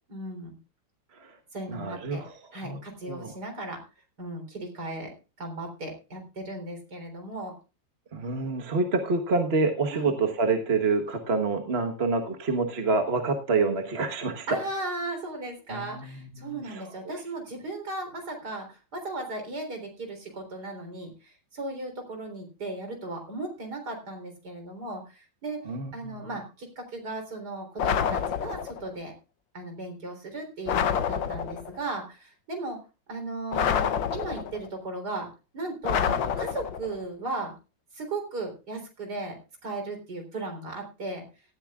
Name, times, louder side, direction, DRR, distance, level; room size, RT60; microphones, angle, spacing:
voice 1, 0.1-0.5 1.5-2.2 2.5-3.8 4.2-7.6 9.9-10.1 14.5-25.6 25.9-29.1 29.5-32.8 33.1-37.5 37.9-41.2, right 2 dB, 60° right, 5 dB, 4.4 m, -36 dB
voice 2, 1.7-2.3 2.6-2.8 3.0-3.3 8.1-14.5 15.7-16.8 25.7-26.3, right 3 dB, 35° right, 5 dB, 1.4 m, -27 dB
sound 1, 27.8-28.9 30.7-31.8 33.5-34.7 35.8-37.0, left 8 dB, 85° left, 1.7 m, -28 dB
18.0 x 13.5 x 2.4 m, 0.31 s
omnidirectional pair, 2.0 m